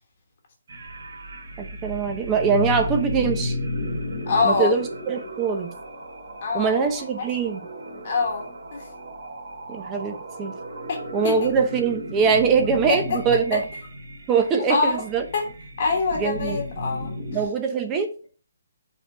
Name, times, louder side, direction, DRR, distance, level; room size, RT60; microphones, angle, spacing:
sound 1, 0.7-17.4, left 1 dB, 60° right, 2.1 m, -34 dB
voice 1, 1.6-3.6 4.4-5.8 6.5-7.7 9.7-10.5 11.1-13.7 14.3-15.3 16.2-16.6 17.3-18.1, right 6 dB, 10° right, 0.6 m, -23 dB
voice 2, 4.3-4.7 6.4-6.9 7.2-7.3 8.0-8.8 10.9-11.0 11.2-11.5 12.9-13.2 13.5-13.6 14.7-15.0 15.3-15.5 15.8-17.1, left 4 dB, 35° left, 1.3 m, -24 dB
5.5 x 3.7 x 5.4 m
hypercardioid pair, 175°, 0 cm